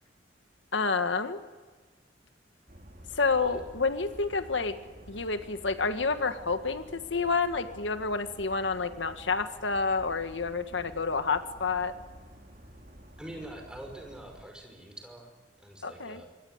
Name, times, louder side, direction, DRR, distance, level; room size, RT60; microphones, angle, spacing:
voice 1, 0.7-1.4 3.1-4.7 5.1-11.9 15.8-16.2, left 4 dB, 90° left, 9 dB, 1.6 m, -29 dB
sound 1, 2.7-14.5, equal, 45° right, 3.8 m, -51 dB
voice 2, 13.2-16.3, right 1 dB, 5° right, 3 dB, 5.5 m, -45 dB
26.0 x 23.0 x 8.1 m, 1.3 s
head